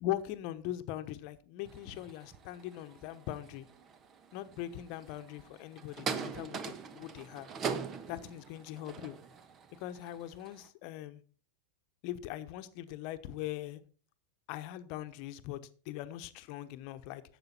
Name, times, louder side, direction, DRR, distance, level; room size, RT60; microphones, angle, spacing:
voice 1, 0.0-3.7 4.3-7.5 8.1-9.2 9.7-11.2 12.0-13.8 14.5-17.2, left 13 dB, 50° left, 1.0 m, -41 dB
sound 1, 1.6-10.7, right 6 dB, 35° right, 1.1 m, -42 dB
12.0 x 7.8 x 4.3 m
hypercardioid pair, 90°, 0 cm